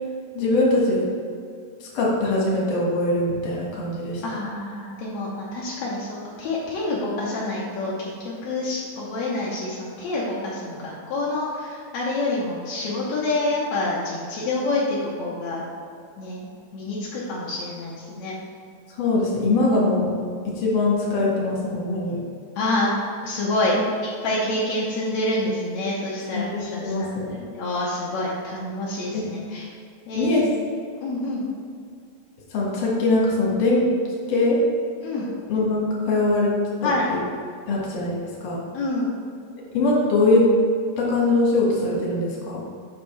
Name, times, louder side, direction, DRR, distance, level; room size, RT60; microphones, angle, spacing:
voice 1, 0.3-1.0 1.9-4.2 19.0-20.1 20.4-22.2 26.3-27.4 29.1-29.3 30.1-30.5 32.5-33.9 34.3-34.6 35.5-36.5 36.8-36.9 37.7-38.6 39.7-40.5 41.0-42.6, left 2 dB, 50° left, -4 dB, 1.7 m, -22 dB
voice 2, 4.2-15.6 16.2-18.4 22.5-22.9 23.2-23.8 24.0-27.1 27.5-29.8 30.1-30.4 31.0-31.5 35.0-35.3 36.8-37.0 38.7-39.1, left 2 dB, 80° left, -6 dB, 1.6 m, -27 dB
7.4 x 6.2 x 3.2 m, 2.3 s
omnidirectional pair, 4.4 m